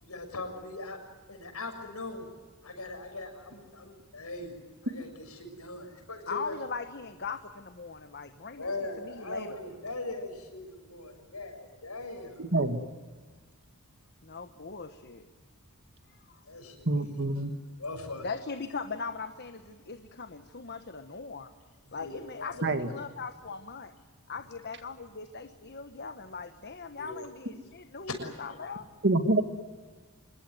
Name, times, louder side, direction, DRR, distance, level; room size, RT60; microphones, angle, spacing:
voice 1, 0.0-1.0 1.3-2.3 2.6-4.5 4.8-6.5 8.6-12.4 16.5-17.2 17.8-18.3 21.9-22.5 22.8-22.9 27.0-27.3 28.1-28.3, left 2 dB, 75° left, 5 dB, 6.6 m, -40 dB
voice 2, 6.3-8.7 9.0-9.6 14.2-15.3 16.3-16.4 18.2-21.5 21.9-23.9 24.3-28.9, left 4 dB, 45° left, 8 dB, 1.2 m, -40 dB
voice 3, 12.4-12.8 16.9-17.5 22.6-22.9 29.0-29.4, right 2 dB, 50° right, 9 dB, 2.1 m, -26 dB
25.5 x 22.0 x 9.5 m, 1.4 s
head